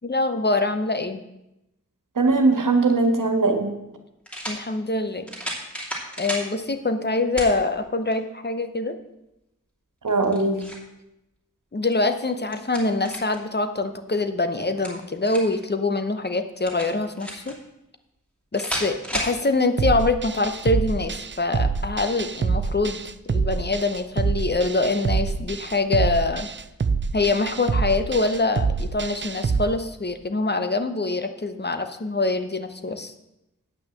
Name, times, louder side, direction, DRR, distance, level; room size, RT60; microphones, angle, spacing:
voice 1, 0.0-1.2 4.5-5.3 6.2-9.0 11.7-17.5 18.5-26.5 27.1-33.1, left 3 dB, 35° left, 9 dB, 0.9 m, -24 dB
voice 2, 2.1-3.7 10.0-10.6, right 3 dB, 90° right, 5 dB, 1.5 m, -20 dB
sound 1, 3.0-3.1 4.3-4.6 5.3-6.5 7.4-7.5 8.1-8.2 10.1-10.9 12.2-13.4 14.6-15.6 16.7-17.5 18.5-19.4, equal, 5° left, 2.8 m, -32 dB
sound 2, 19.8-29.6, right 4 dB, 35° right, 0.5 m, -26 dB
8.7 x 5.9 x 7.5 m, 0.89 s
wide cardioid pair, 75°, 31 cm